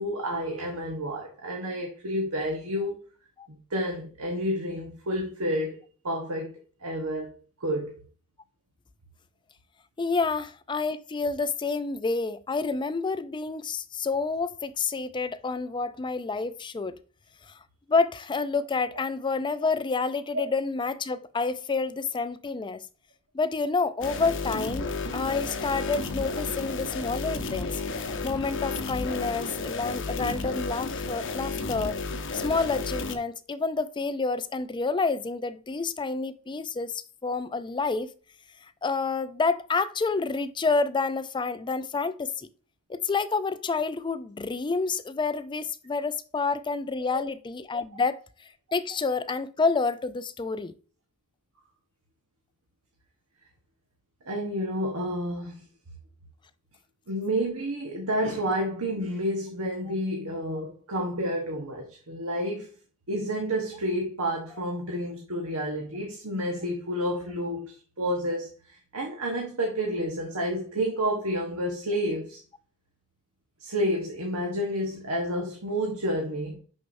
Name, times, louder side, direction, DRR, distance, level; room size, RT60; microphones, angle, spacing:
voice 1, 0.0-3.0 3.5-6.5 6.8-7.3 7.6-8.0 30.2-30.3 47.1-47.2 54.3-55.6 57.1-62.7 63.1-72.4 73.6-76.6, equal, 70° right, 1.2 m, -30 dB
voice 2, 10.0-17.0 17.5-17.6 17.9-22.8 23.3-27.8 28.2-32.0 32.3-38.1 38.8-42.5 42.9-50.7, left 4 dB, 20° left, 0.4 m, -29 dB
sound 1, 24.0-33.2, left 3 dB, 60° left, 0.7 m, -32 dB
6.2 x 5.8 x 2.6 m
head